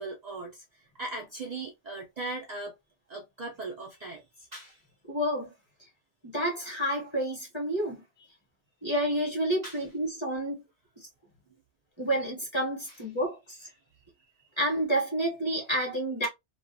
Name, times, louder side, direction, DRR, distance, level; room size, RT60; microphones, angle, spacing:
voice 1, 0.0-2.8 3.1-4.8 8.2-8.3 9.6-9.8 12.9-13.0, right 2 dB, 50° right, 0.5 m, -39 dB
voice 2, 5.1-5.5 6.2-8.0 8.8-10.6 11.0-11.1 12.0-13.7 14.6-16.3, right 1 dB, 30° left, 0.8 m, -29 dB
2.3 x 2.3 x 2.5 m
omnidirectional pair, 1.1 m